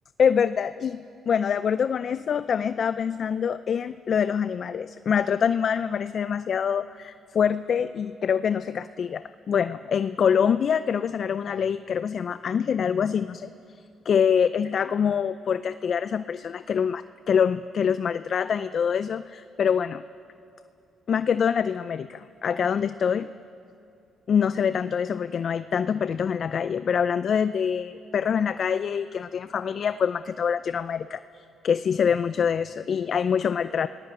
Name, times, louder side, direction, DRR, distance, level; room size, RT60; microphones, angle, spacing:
voice 1, 0.2-13.5 14.1-20.0 21.1-23.3 24.3-33.9, left 7 dB, 55° left, 13 dB, 0.5 m, -25 dB
27.5 x 17.5 x 8.9 m, 2.6 s
cardioid pair, 90°, 0 cm